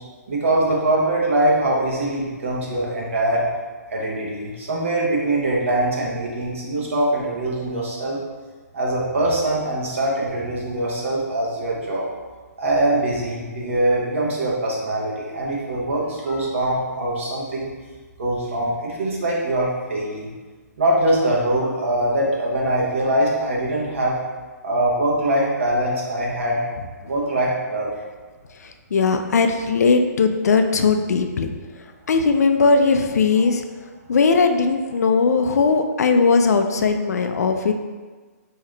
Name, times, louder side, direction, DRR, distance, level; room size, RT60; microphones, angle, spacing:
voice 1, 0.3-3.4 3.9-8.2 8.7-12.0 12.6-17.7 18.2-20.3 20.8-24.2 24.6-26.6 27.1-27.9, right 1 dB, 50° right, -4 dB, 0.9 m, -22 dB
voice 2, 28.6-31.5 31.7-33.6 34.1-37.7, left 4 dB, 65° left, 6 dB, 0.4 m, -19 dB
3.7 x 2.8 x 3.2 m, 1.4 s
hypercardioid pair, 175°, 9 cm